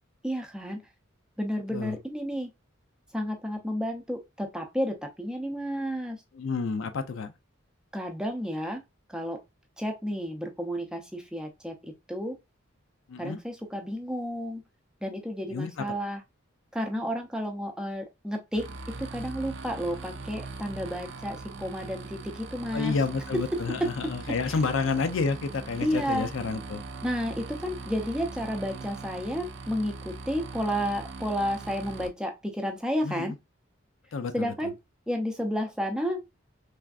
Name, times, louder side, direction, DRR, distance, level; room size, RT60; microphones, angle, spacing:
voice 1, 0.2-0.8 1.4-2.5 3.1-6.2 7.9-8.8 9.1-9.4 9.8-12.4 13.2-14.6 15.0-16.2 16.7-22.9 25.8-26.3 27.0-33.3 34.3-34.7 35.1-36.3, equal, 5° right, 0.5 m, -31 dB
voice 2, 6.3-7.3 13.1-13.4 15.5-15.9 22.7-26.8 33.0-33.4 34.1-34.7, left 4 dB, 70° left, 0.4 m, -30 dB
sound 1, 18.5-32.1, right 3 dB, 60° right, 0.4 m, -41 dB
3.4 x 2.5 x 2.3 m
head